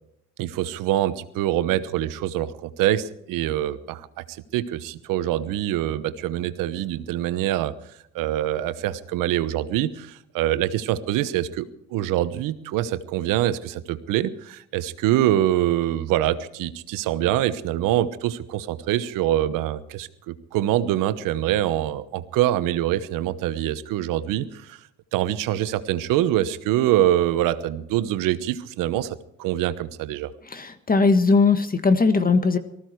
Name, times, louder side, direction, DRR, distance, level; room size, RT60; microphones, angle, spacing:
voice 1, 0.4-7.7 8.1-24.8 25.1-30.3, right 13 dB, 80° right, 13 dB, 1.1 m, -24 dB
voice 2, 30.5-32.6, left 4 dB, 25° left, 10 dB, 1.6 m, -19 dB
19.0 x 15.0 x 4.7 m, 0.76 s
supercardioid pair, 80°, 32 cm